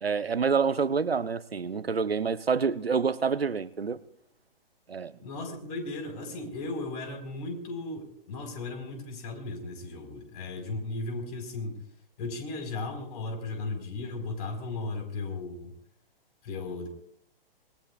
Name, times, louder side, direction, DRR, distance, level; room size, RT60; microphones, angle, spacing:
voice 1, 0.0-4.0 4.9-5.1, right 5 dB, 90° right, 0.8 m, -27 dB
voice 2, 5.2-11.8 12.2-15.7 16.4-16.9, left 3 dB, 40° left, 4.6 m, -36 dB
26.5 x 20.5 x 2.4 m
figure-of-eight pair, 120°, 29 cm